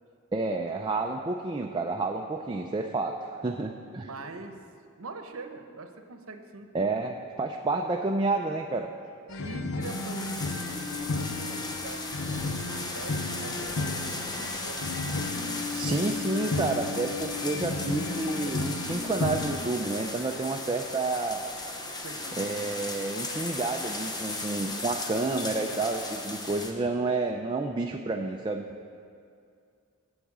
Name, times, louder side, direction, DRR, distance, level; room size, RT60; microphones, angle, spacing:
voice 1, 0.3-4.1 6.7-8.9 15.7-21.5 22.4-28.6, right 3 dB, 20° right, 2 dB, 0.4 m, -30 dB
voice 2, 4.0-4.6 5.0-6.7 9.4-15.0 21.9-22.6, right 3 dB, 75° right, 6 dB, 0.9 m, -43 dB
sound 1, 9.3-19.6, left 3 dB, 70° left, 0.6 m, -33 dB
sound 2, 9.8-26.7, left 2 dB, 20° left, 0.9 m, -36 dB
8.4 x 8.0 x 7.4 m, 2.3 s
head